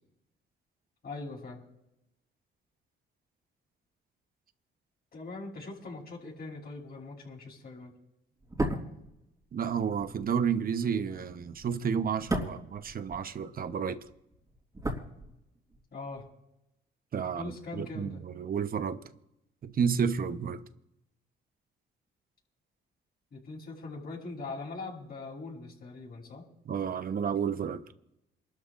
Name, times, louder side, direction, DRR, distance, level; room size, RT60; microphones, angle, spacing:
voice 1, 1.0-1.6 5.1-7.9 15.9-16.2 17.4-18.2 23.3-26.4, left 3 dB, 50° left, 7.0 m, -41 dB
sound 1, 8.4-13.7 14.0-15.8 16.1-16.2, right 1 dB, 15° right, 3.7 m, -36 dB
voice 2, 9.5-14.1 17.1-19.0 19.6-20.6 26.7-27.8, right 7 dB, 50° right, 1.0 m, -31 dB
27.5 x 13.0 x 2.5 m
cardioid pair, 90°, 20 cm